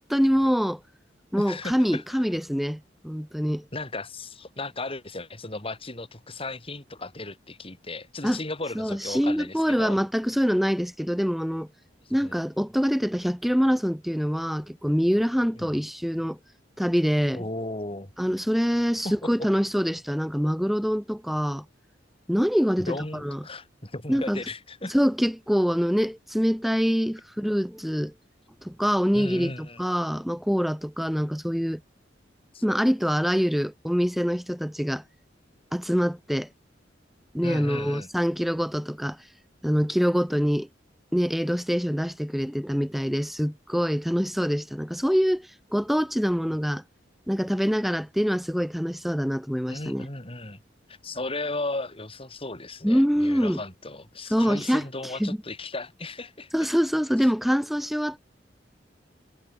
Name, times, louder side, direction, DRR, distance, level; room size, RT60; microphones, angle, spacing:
voice 1, 0.1-0.8 1.3-3.6 8.2-8.4 8.7-11.7 12.1-16.4 16.8-17.4 18.2-21.6 22.3-23.4 24.1-24.4 24.9-28.1 28.6-31.8 32.6-35.0 35.7-36.5 37.3-39.2 39.6-40.7 41.1-46.8 47.3-50.1 52.8-53.6 54.3-54.9 55.2-55.4 56.5-58.2, equal, ahead, 1.0 m, -25 dB
voice 2, 1.3-2.0 3.7-10.0 12.1-12.3 15.6-15.7 17.3-18.1 19.0-19.2 22.8-25.0 29.1-29.8 32.5-32.6 37.4-38.1 49.7-50.6 50.9-56.5, left 2 dB, 30° left, 4.7 m, -35 dB
head